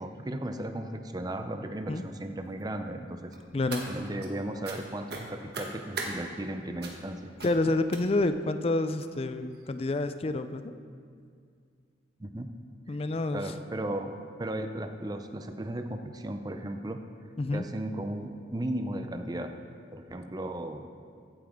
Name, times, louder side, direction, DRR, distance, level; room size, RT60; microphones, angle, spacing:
voice 1, 0.0-3.4 3.9-7.3 12.2-12.6 12.9-13.0 13.3-17.1 17.5-19.5 19.9-20.9, right 1 dB, 20° right, 7 dB, 0.5 m, -36 dB
sound 1, 3.3-4.3 4.6-4.8 5.1-6.1 6.8-7.1 7.4-7.6 7.9-8.3 9.0-9.1 9.5-9.7 9.9-10.0, right 3 dB, 55° right, 1.3 m, -39 dB
voice 2, 3.5-3.8 7.4-10.6 12.9-13.5 17.4-17.7, left 2 dB, 30° left, 10 dB, 0.4 m, -28 dB
15.5 x 8.8 x 3.6 m, 2.2 s
head